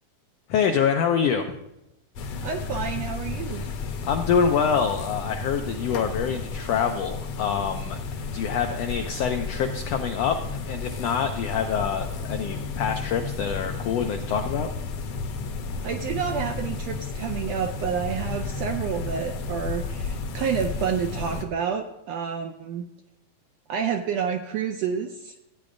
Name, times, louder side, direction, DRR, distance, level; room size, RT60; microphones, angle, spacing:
voice 1, 0.5-1.5 3.5-3.7 4.1-8.0 8.3-14.7, left 7 dB, 85° left, 5 dB, 1.4 m, -26 dB
sound 1, 2.2-21.4, left 4 dB, 65° left, 1.7 m, -32 dB
voice 2, 2.4-3.6 15.8-22.9 23.7-25.3, right 7 dB, 80° right, 4 dB, 1.5 m, -29 dB
15.0 x 9.4 x 2.5 m, 0.88 s
omnidirectional pair, 3.5 m